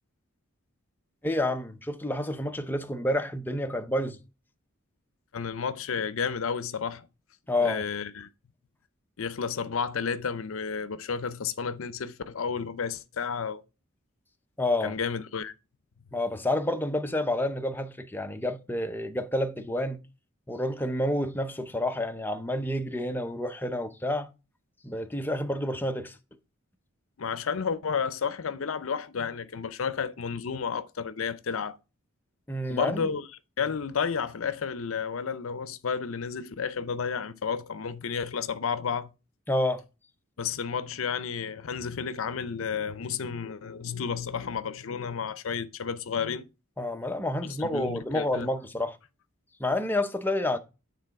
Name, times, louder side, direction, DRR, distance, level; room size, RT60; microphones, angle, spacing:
voice 1, 1.2-4.2 7.5-7.8 14.6-14.9 16.1-20.0 20.5-24.3 24.8-26.2 32.5-33.0 39.5-39.8 46.8-49.0 49.6-50.6, left 1 dB, 10° left, 0.6 m, -29 dB
voice 2, 5.3-7.1 7.6-8.3 9.2-13.6 14.8-15.6 27.2-31.8 32.7-33.3 33.6-39.1 40.4-46.5 47.6-48.5, left 6 dB, 70° left, 0.6 m, -31 dB
9.1 x 3.9 x 4.6 m
head